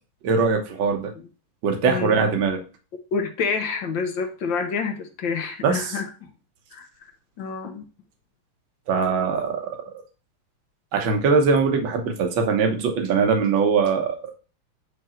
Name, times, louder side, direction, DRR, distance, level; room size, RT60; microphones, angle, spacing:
voice 1, 0.2-1.1 1.6-2.6 5.6-6.0 8.9-9.6 10.9-14.2, right 5 dB, 65° right, 4 dB, 1.9 m, -21 dB
voice 2, 3.1-6.1 6.7-6.9 7.4-7.8, left 5 dB, 65° left, 4 dB, 1.7 m, -27 dB
8.9 x 3.4 x 4.3 m, 0.35 s
omnidirectional pair, 2.4 m